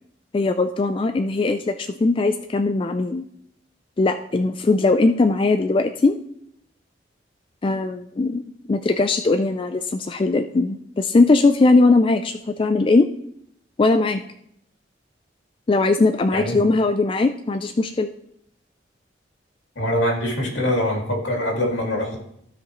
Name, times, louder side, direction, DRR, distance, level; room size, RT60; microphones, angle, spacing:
voice 1, 0.3-3.3 4.0-6.2 7.6-8.4 8.7-13.1 13.8-14.2 15.7-18.1, left 3 dB, 25° left, 8 dB, 0.3 m, -19 dB
voice 2, 19.8-22.2, left 1 dB, 85° left, 0 dB, 2.3 m, -23 dB
15.0 x 5.1 x 3.1 m, 0.71 s
head